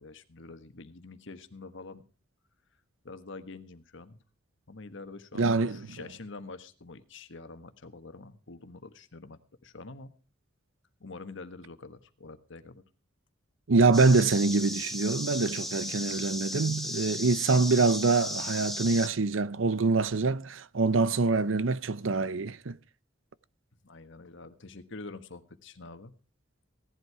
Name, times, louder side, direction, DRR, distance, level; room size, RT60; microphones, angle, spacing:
voice 1, 0.0-2.0 3.0-4.2 4.7-10.1 11.0-12.8 23.8-26.1, left 3 dB, 70° left, 1.4 m, -46 dB
voice 2, 5.4-6.0 13.7-22.8, right 3 dB, 75° right, 0.7 m, -25 dB
sound 1, 13.9-19.1, left 1 dB, ahead, 1.7 m, -36 dB
17.0 x 11.0 x 4.8 m
head